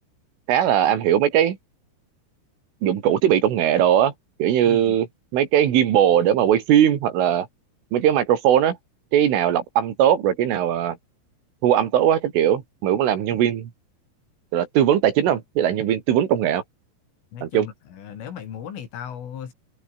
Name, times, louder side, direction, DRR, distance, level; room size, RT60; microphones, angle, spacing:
voice 1, 0.5-1.6 2.8-4.1 4.4-5.1 5.3-7.5 7.9-8.8 9.1-11.0 11.6-13.7 14.5-16.6 17.4-17.7, right 10 dB, 75° right, 5.1 m, -19 dB
voice 2, 4.7-5.0 17.3-19.5, left 8 dB, 75° left, 6.0 m, -36 dB
omnidirectional pair, 5.8 m